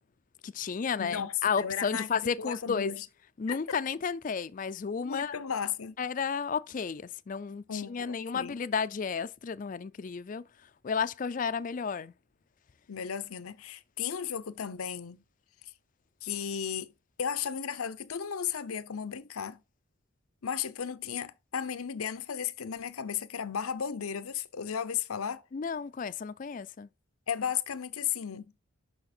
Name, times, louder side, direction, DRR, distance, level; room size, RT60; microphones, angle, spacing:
voice 1, 0.4-2.9 3.4-5.3 6.0-10.4 10.8-12.1 25.5-26.9, left 6 dB, 40° left, 0.3 m, -32 dB
voice 2, 1.0-2.1 2.4-3.1 3.5-3.8 5.0-6.0 7.7-8.6 12.9-15.2 15.6-15.7 16.2-16.9 17.2-19.6 20.4-25.4 27.3-28.5, left 8 dB, 90° left, 0.7 m, -35 dB
6.4 x 5.7 x 4.3 m
head